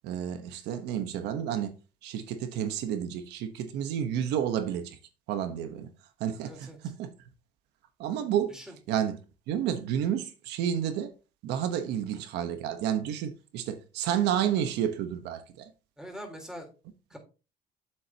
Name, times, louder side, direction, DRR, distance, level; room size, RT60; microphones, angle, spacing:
voice 1, 0.0-1.7 2.0-5.0 5.3-5.9 6.2-7.1 8.0-8.5 8.9-9.2 9.5-11.1 11.4-15.7, right 9 dB, 85° right, 1.1 m, -30 dB
voice 2, 6.4-6.8 8.5-8.8 16.0-16.7 17.1-17.2, equal, 5° right, 3.8 m, -43 dB
10.0 x 7.8 x 2.9 m
cardioid pair, 110°, 17 cm